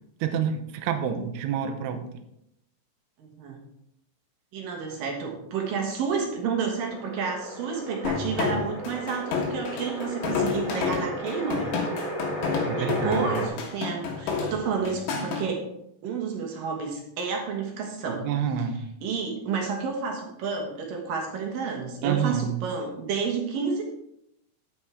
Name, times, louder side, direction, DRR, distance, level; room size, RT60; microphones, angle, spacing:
voice 1, 0.2-2.0 12.7-13.3 18.2-18.9 22.0-22.6, right 8 dB, 80° right, 6 dB, 3.0 m, -28 dB
voice 2, 3.2-3.6 4.5-11.8 12.5-15.7 16.0-18.3 19.0-23.8, right 5 dB, 65° right, 1 dB, 2.5 m, -30 dB
sound 1, 6.8-13.5, right 1 dB, 40° left, 3.7 m, -35 dB
sound 2, 8.0-15.4, left 5 dB, 70° left, 3.4 m, -29 dB
9.7 x 8.9 x 3.6 m, 0.80 s
omnidirectional pair, 5.5 m